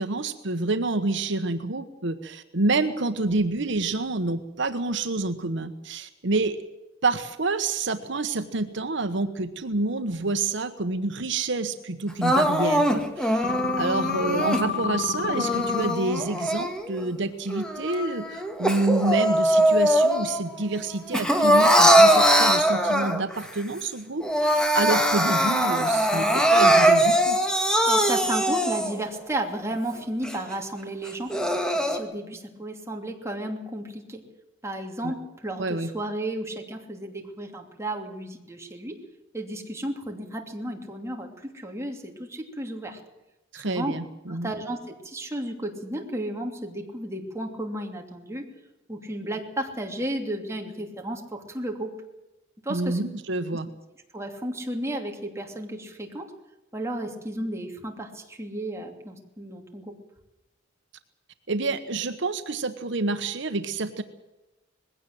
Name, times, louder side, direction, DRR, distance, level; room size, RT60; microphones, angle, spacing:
voice 1, 0.0-6.6 7.0-27.4 35.0-35.1 35.6-35.9 43.5-44.5 52.7-53.7 61.5-64.0, right 3 dB, 65° right, 9 dB, 1.2 m, -28 dB
Crying sobbing, 12.2-14.6 15.3-17.0 17.5-20.4 20.7-23.4 23.8-23.9 24.2-29.0 29.6-29.7 30.2-30.3 31.1-32.0, equal, 5° left, 2.1 m, -21 dB
sound 1, 13.4-15.9, left 7 dB, 45° left, 1.0 m, -29 dB
voice 2, 27.9-31.4 31.7-34.2 34.6-39.0 39.3-43.0 43.5-43.9 44.3-48.4 48.9-51.9 52.6-53.0 54.1-56.3 56.7-60.0, right 1 dB, 15° right, 2 dB, 2.8 m, -33 dB
20.5 x 16.5 x 7.8 m, 1.0 s
head